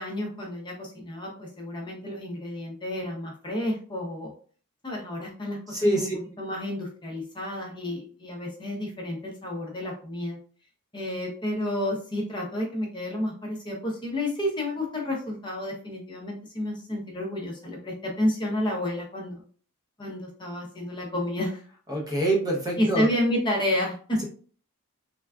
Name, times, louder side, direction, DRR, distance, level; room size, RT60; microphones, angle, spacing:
voice 1, 0.0-4.3 4.8-10.4 10.9-19.4 20.0-21.6 22.8-24.2, left 1 dB, 20° left, -1 dB, 0.7 m, -30 dB
voice 2, 5.7-6.1 21.9-23.1, right 1 dB, 15° right, -1 dB, 0.7 m, -25 dB
3.3 x 2.2 x 2.3 m, 0.42 s
head